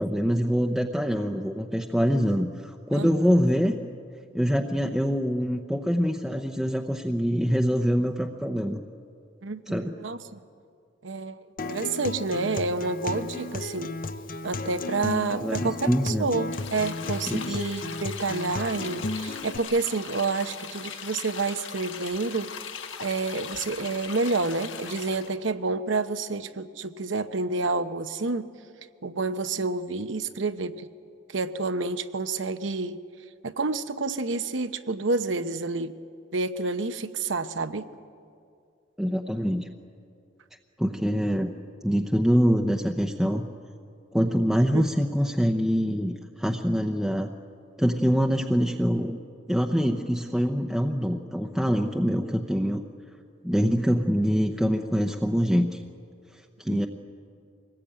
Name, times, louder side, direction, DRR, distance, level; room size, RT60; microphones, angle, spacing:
voice 1, 0.0-3.8 4.3-8.8 9.7-10.0 15.4-16.3 17.3-17.6 39.0-39.7 40.8-41.5 41.8-43.4 44.1-47.3 47.8-49.2 49.5-52.8 53.4-55.8 56.6-56.9, equal, ahead, 3 dB, 0.8 m, -24 dB
voice 2, 9.4-10.4 11.0-13.9 14.4-22.5 23.0-28.5 29.0-30.9 31.3-33.0 33.4-35.9 36.3-37.8 44.7-44.8 56.7-56.8, right 3 dB, 70° right, 10 dB, 1.0 m, -29 dB
Acoustic guitar, 11.6-19.6, left 2 dB, 45° left, 0.7 m, -34 dB
sound 1, 16.5-25.3, left 7 dB, 75° left, 1.4 m, -40 dB
24.5 x 20.0 x 8.8 m, 2.4 s
head